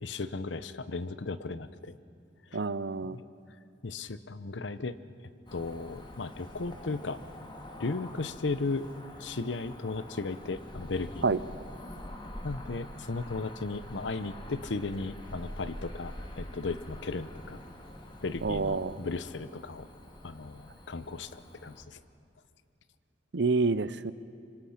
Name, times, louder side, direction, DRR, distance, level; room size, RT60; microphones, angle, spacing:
voice 1, 0.0-2.0 2.5-2.6 3.1-3.2 3.8-5.0 5.5-7.2 7.8-8.9 9.2-11.4 12.4-17.6 18.2-19.9 20.2-22.0, left 3 dB, 85° left, 14 dB, 0.8 m, -36 dB
voice 2, 2.5-3.2 11.2-11.4 18.4-19.0 23.3-24.1, right 4 dB, 70° right, 16 dB, 0.6 m, -28 dB
Cricket / Motor vehicle (road), 5.5-21.8, left 1 dB, 25° left, 1.8 m, -46 dB
25.5 x 24.5 x 5.9 m, 2.4 s
head